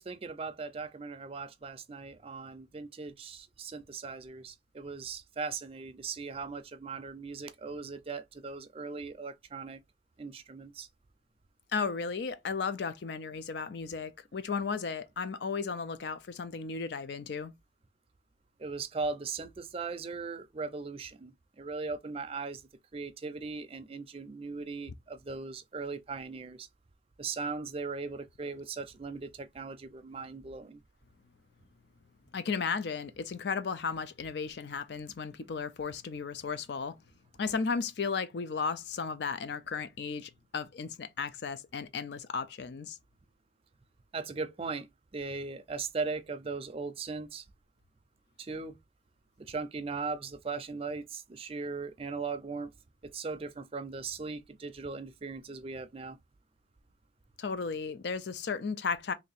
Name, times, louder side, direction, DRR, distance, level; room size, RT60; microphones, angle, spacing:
voice 1, 0.0-9.8 10.2-10.9 18.6-22.6 22.9-26.7 27.2-30.8 44.1-47.5 48.4-48.8 49.4-52.7 53.0-56.2, right 4 dB, 30° right, 0.4 m, -39 dB
voice 2, 11.7-17.5 32.3-37.0 37.4-43.0 57.4-59.1, left 5 dB, 65° left, 0.4 m, -35 dB
3.1 x 2.7 x 4.1 m
head